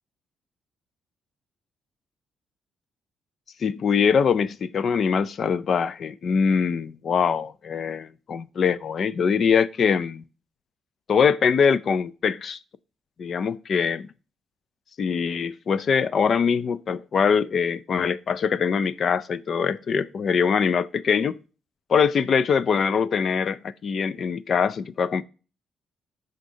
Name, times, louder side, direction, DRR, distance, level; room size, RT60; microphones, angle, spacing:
voice 1, 3.6-10.2 11.1-12.6 13.2-14.1 15.0-21.4 21.9-25.2, left 6 dB, 50° left, 0.5 m, -23 dB
15.0 x 5.2 x 2.7 m
cardioid pair, 90°, 0 cm